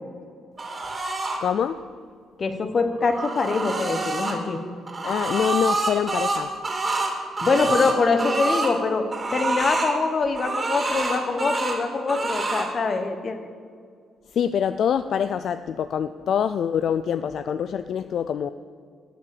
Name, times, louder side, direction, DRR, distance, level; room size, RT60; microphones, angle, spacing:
sound 1, 0.6-1.4 2.8-4.4 4.9-8.7 9.1-9.9 10.3-11.8 12.1-12.7, right 3 dB, 25° right, 2.4 m, -27 dB
voice 1, 1.4-1.8 5.0-6.5 14.3-18.5, left 8 dB, 65° left, 12 dB, 0.3 m, -25 dB
voice 2, 2.4-4.6 7.4-13.4, left 4 dB, 40° left, 8 dB, 1.2 m, -24 dB
12.0 x 8.5 x 6.8 m, 2.1 s
cardioid pair, 90°, 0 cm